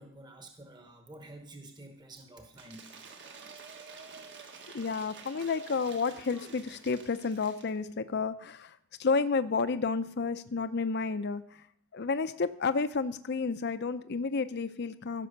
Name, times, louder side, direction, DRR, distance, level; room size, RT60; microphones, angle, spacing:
voice 1, 0.0-2.9, right 1 dB, 20° right, 4 dB, 1.1 m, -49 dB
Cheering / Applause / Crowd, 2.5-7.8, right 4 dB, 55° right, 1.6 m, -49 dB
voice 2, 4.7-11.6 11.9-15.3, left 4 dB, 50° left, 12 dB, 0.6 m, -31 dB
15.5 x 6.1 x 6.6 m, 0.67 s
head